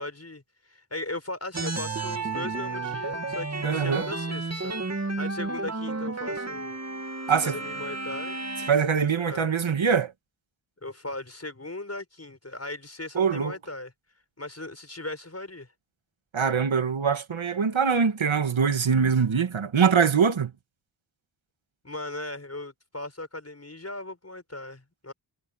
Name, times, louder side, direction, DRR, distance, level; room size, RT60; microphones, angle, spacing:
voice 1, 0.0-6.8 7.3-8.4 9.2-9.5 10.8-13.9 14.4-15.7 21.8-25.1, left 2 dB, 35° left, 6.2 m, -38 dB
sound 1, 1.5-8.7, right 3 dB, 35° right, 2.4 m, -32 dB
voice 2, 3.6-4.1 7.3-7.6 8.7-10.1 13.2-13.6 16.3-20.5, right 6 dB, 85° right, 1.8 m, -23 dB
wide cardioid pair, 85°, 46 cm